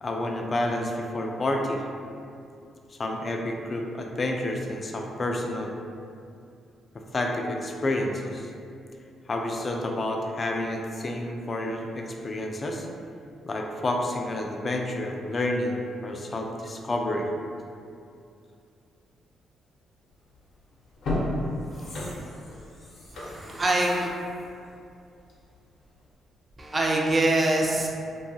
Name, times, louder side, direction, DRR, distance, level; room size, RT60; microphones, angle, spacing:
voice 1, 0.0-1.9 2.9-5.8 7.1-8.5 9.3-12.9 13.5-17.3, left 1 dB, 35° left, 2 dB, 0.3 m, -29 dB
sound 1, 20.2-20.4 20.9-25.6 26.0-26.1, left 1 dB, 70° left, 0.7 m, -34 dB
voice 2, 23.1-24.1 26.6-27.9, right 2 dB, 30° right, -1 dB, 0.4 m, -24 dB
2.6 x 2.3 x 2.7 m, 2.4 s
cardioid pair, 80°, 0 cm